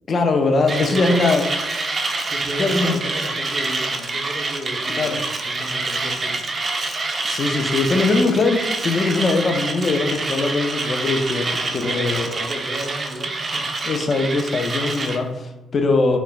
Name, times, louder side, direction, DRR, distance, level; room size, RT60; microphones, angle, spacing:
voice 1, 0.1-1.4 2.6-3.0 4.9-5.2 7.2-12.4 13.8-16.2, left 3 dB, 45° left, 5 dB, 0.4 m, -21 dB
Mechanisms, 0.7-15.2, right 3 dB, 40° right, 0.3 m, -26 dB
voice 2, 0.7-1.2 2.3-6.3 11.6-13.8, equal, 90° right, -4 dB, 0.7 m, -33 dB
3.0 x 2.1 x 2.3 m, 1.1 s
hypercardioid pair, 45°, 0 cm